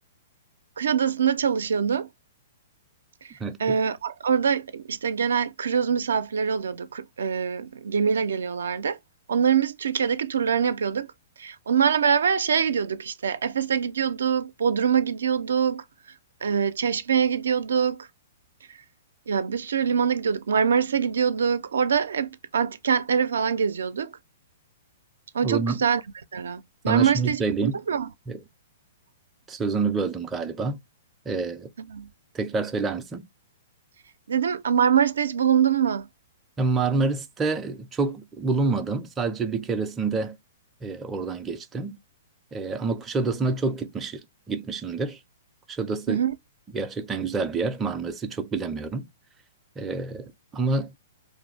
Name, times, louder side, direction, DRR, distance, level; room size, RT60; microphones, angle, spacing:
voice 1, 0.8-2.1 3.2-3.3 3.6-9.0 9.3-11.1 11.4-15.8 16.4-18.1 19.3-24.1 25.3-26.0 26.3-28.1 31.8-32.1 34.3-36.1 46.1-46.3, right 7 dB, 90° right, 0.4 m, -24 dB
voice 2, 3.4-3.8 25.4-25.8 26.9-27.8 28.3-28.4 29.5-30.8 31.3-31.7 32.3-33.3 36.6-40.4 40.8-42.0 42.5-44.2 44.5-45.2 45.7-46.3 46.7-49.1 49.8-50.9, right 4 dB, 15° right, 0.4 m, -27 dB
2.5 x 2.1 x 3.2 m
hypercardioid pair, 150°, 0 cm